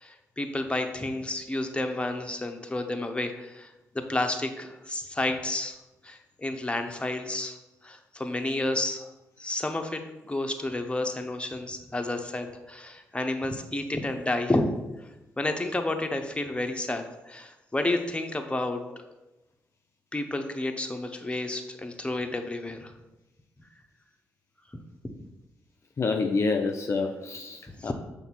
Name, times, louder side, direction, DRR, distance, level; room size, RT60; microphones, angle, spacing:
voice 1, 0.0-3.7 4.1-5.8 6.0-7.6 7.8-9.1 9.4-14.7 15.0-15.1 15.4-19.1 20.1-22.9 24.7-25.1 27.8-27.9, left 2 dB, 15° left, 5 dB, 0.9 m, -31 dB
voice 2, 26.0-27.9, left 4 dB, 45° left, 4 dB, 0.5 m, -27 dB
5.8 x 3.3 x 5.8 m, 1.0 s
hypercardioid pair, 40°, 7 cm